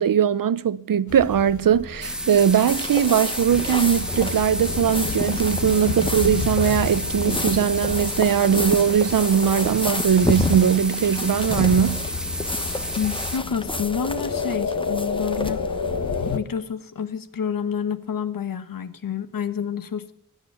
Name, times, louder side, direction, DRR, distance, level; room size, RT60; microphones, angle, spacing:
voice 1, 0.0-12.1, right 8 dB, 85° right, 0.7 m, -20 dB
sound 1, 1.1-16.4, left 5 dB, 60° left, 1.4 m, -31 dB
sound 2, 2.0-13.4, right 1 dB, ahead, 1.4 m, -31 dB
sound 3, 2.7-16.3, left 2 dB, 15° left, 1.1 m, -31 dB
voice 2, 13.0-15.7 16.3-20.1, left 7 dB, 90° left, 1.2 m, -28 dB
16.5 x 11.5 x 6.9 m
wide cardioid pair, 95°, 33 cm